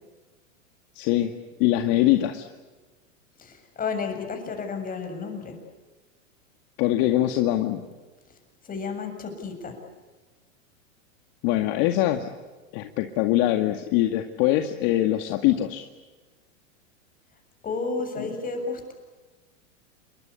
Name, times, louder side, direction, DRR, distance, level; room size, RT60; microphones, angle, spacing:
voice 1, 1.0-1.3 1.6-2.5 6.8-7.8 11.4-12.3 12.7-15.9 18.2-18.3, left 14 dB, 45° left, 6 dB, 2.2 m, -23 dB
voice 2, 3.4-5.6 8.6-9.8 17.6-18.9, left 4 dB, 20° left, 5 dB, 7.4 m, -32 dB
28.5 x 23.5 x 8.4 m, 1.3 s
hypercardioid pair, 125°, 39 cm